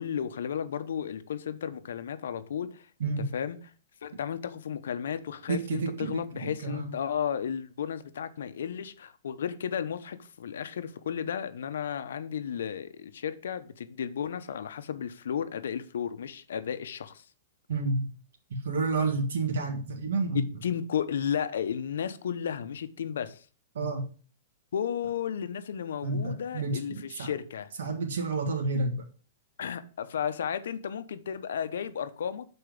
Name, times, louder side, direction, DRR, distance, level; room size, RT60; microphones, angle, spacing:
voice 1, 0.0-2.9 3.3-3.6 4.0-17.2 20.6-23.4 24.7-27.7 29.6-32.4, left 8 dB, 85° left, 0.7 m, -33 dB
voice 2, 5.5-6.9 17.7-18.1 18.5-20.4 23.7-24.1 26.0-27.3 27.8-29.0, right 3 dB, 80° right, 1.5 m, -30 dB
6.7 x 4.3 x 5.1 m
hypercardioid pair, 160°, 0 cm